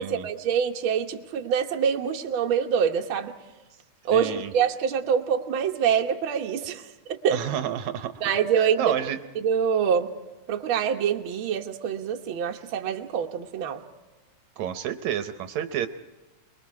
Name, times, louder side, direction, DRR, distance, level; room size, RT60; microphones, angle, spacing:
voice 1, 0.0-3.3 4.0-7.4 8.2-9.0 9.3-10.1 10.5-13.8, right 7 dB, 55° right, 2 dB, 1.7 m, -25 dB
voice 2, 4.1-4.5 7.3-8.1 8.8-9.2 14.6-15.9, right 10 dB, 75° right, 9 dB, 2.0 m, -29 dB
27.0 x 21.5 x 4.8 m, 1.2 s
omnidirectional pair, 3.4 m